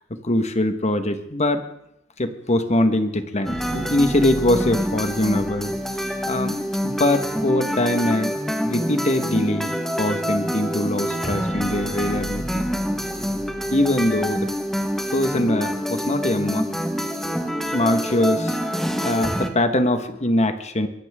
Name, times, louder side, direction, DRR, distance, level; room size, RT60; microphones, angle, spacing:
voice 1, 0.1-1.6 2.2-8.3 8.6-12.7 13.7-14.5 15.1-16.7 17.7-18.6 19.0-20.9, left 1 dB, 35° left, 8 dB, 1.4 m, -22 dB
sound 1, 3.4-19.5, equal, ahead, 1.4 m, -26 dB
23.5 x 16.5 x 3.7 m, 0.80 s
head